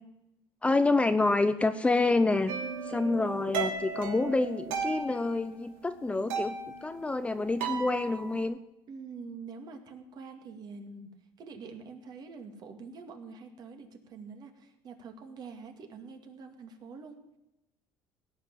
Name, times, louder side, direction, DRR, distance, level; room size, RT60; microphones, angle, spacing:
voice 1, 0.6-2.5 2.9-6.6 6.8-8.6, left 3 dB, 15° left, 11 dB, 0.6 m, -27 dB
sound 1, 2.5-5.7 6.0-8.4, right 5 dB, 80° right, 2.6 m, -36 dB
voice 2, 8.9-11.1 11.4-17.2, right 4 dB, 45° right, 5 dB, 2.3 m, -45 dB
17.5 x 5.8 x 10.0 m, 0.90 s
cardioid pair, 120°, 9 cm